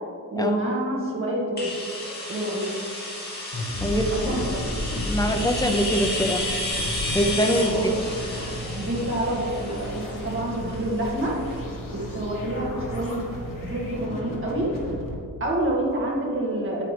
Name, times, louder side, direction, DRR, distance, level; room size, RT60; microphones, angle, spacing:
voice 1, 0.3-1.7 2.3-2.7 3.8-4.6 7.6-7.9 8.8-11.4 11.9-13.3 13.6-14.7 15.4-16.9, right 1 dB, 40° right, -3 dB, 2.0 m, -28 dB
sound 1, 1.6-11.2, left 1 dB, 30° left, 2.3 m, -32 dB
sound 2, 3.5-15.1, left 1 dB, 85° left, 1.6 m, -35 dB
sound 3, 3.9-14.1, right 2 dB, 85° right, 1.4 m, -38 dB
voice 2, 5.1-6.6 7.1-7.9, equal, 10° left, 4 dB, 0.6 m, -23 dB
8.6 x 8.4 x 3.4 m, 2.2 s
wide cardioid pair, 145°, 32 cm